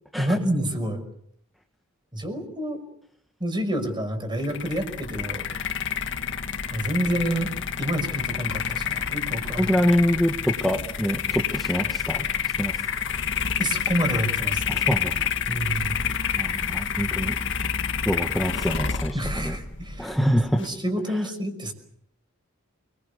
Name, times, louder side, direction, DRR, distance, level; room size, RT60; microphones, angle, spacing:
voice 1, 0.2-1.0 2.1-2.8 3.4-5.5 6.7-7.5 7.8-9.7 13.6-14.8 15.5-16.0 19.1-21.7, right 1 dB, 20° right, 7 dB, 5.6 m, -28 dB
sound 1, 4.4-20.7, left 7 dB, 60° left, 1.7 m, -28 dB
voice 2, 9.6-12.2 12.6-12.7 14.7-15.2 16.4-17.4 18.0-19.6 20.0-20.6 21.1-21.2, equal, ahead, 2 dB, 1.6 m, -25 dB
29.5 x 22.0 x 6.8 m, 0.66 s
head